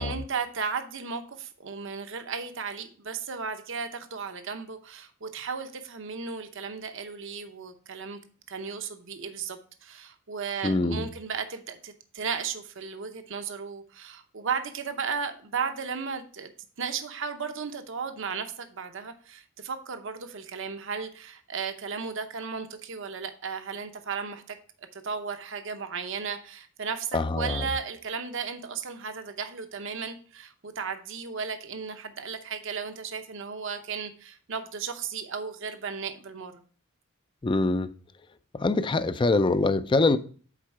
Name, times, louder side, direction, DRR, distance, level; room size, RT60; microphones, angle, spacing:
voice 1, 0.0-8.2 8.5-16.5 16.8-24.6 24.9-36.5, right 5 dB, 60° right, 0.8 m, -35 dB
voice 2, 10.6-11.1 27.1-27.6 37.4-37.9 38.5-40.2, left 3 dB, 25° left, 0.4 m, -24 dB
7.5 x 4.5 x 4.6 m
head